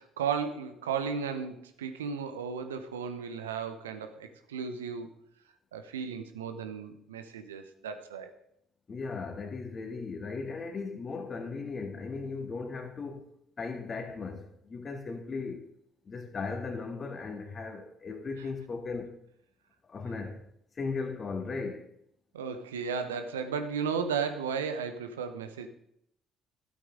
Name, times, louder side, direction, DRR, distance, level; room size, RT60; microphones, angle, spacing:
voice 1, 0.0-5.1 5.7-8.3 22.3-25.7, right 6 dB, 85° right, 8 dB, 0.8 m, -34 dB
voice 2, 8.9-13.3 13.6-15.7 16.0-19.2 19.9-20.4 20.7-21.9, left 4 dB, 40° left, 4 dB, 2.0 m, -37 dB
12.5 x 8.6 x 3.8 m, 0.73 s
hypercardioid pair, 55°, 0 cm